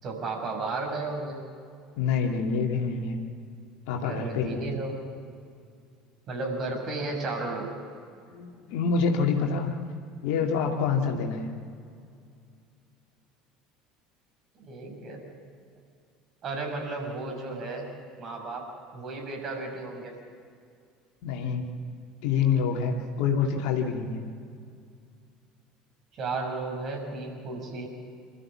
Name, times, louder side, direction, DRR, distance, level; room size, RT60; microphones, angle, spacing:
voice 1, 0.0-1.4 4.0-5.0 6.3-7.7 14.6-15.4 16.4-20.2 26.1-27.9, right 3 dB, 40° right, 2 dB, 5.8 m, -34 dB
voice 2, 2.0-3.2 3.9-4.6 8.3-9.8 10.2-11.5 21.2-21.7 22.2-24.2, left 5 dB, 60° left, 2 dB, 2.5 m, -26 dB
27.0 x 14.0 x 7.4 m, 2.3 s
figure-of-eight pair, 65°, 0 cm